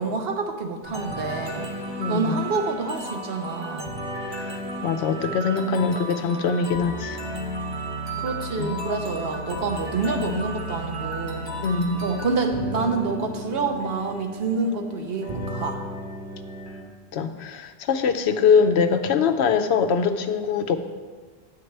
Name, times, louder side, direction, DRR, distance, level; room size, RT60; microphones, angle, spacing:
voice 1, 0.0-1.7 2.1-3.9 8.2-11.5 12.0-15.8, right 3 dB, 70° right, 4 dB, 1.1 m, -27 dB
sound 1, 0.8-16.8, right 1 dB, 25° right, 1.0 m, -33 dB
voice 2, 2.0-2.4 4.3-4.5 4.8-7.2 8.6-8.7 11.6-12.1 17.1-20.8, left 5 dB, 85° left, 8 dB, 0.9 m, -22 dB
9.1 x 8.7 x 3.3 m, 1.5 s
omnidirectional pair, 1.1 m